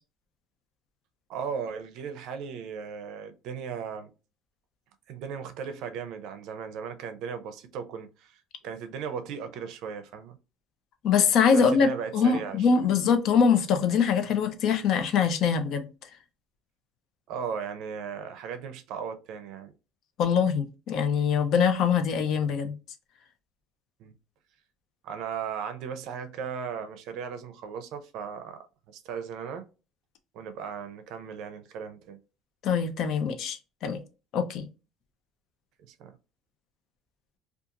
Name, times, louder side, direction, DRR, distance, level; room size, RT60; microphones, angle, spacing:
voice 1, 1.3-4.1 5.1-10.4 11.5-12.7 17.3-19.7 24.0-24.1 25.0-29.6 30.3-32.2 35.9-36.2, right 6 dB, 65° right, 0.5 m, -37 dB
voice 2, 11.0-15.9 20.2-22.7 32.6-33.6 33.8-34.0 34.3-34.6, left 6 dB, 55° left, 0.5 m, -23 dB
2.4 x 2.3 x 2.8 m
cardioid pair, 145°, 0 cm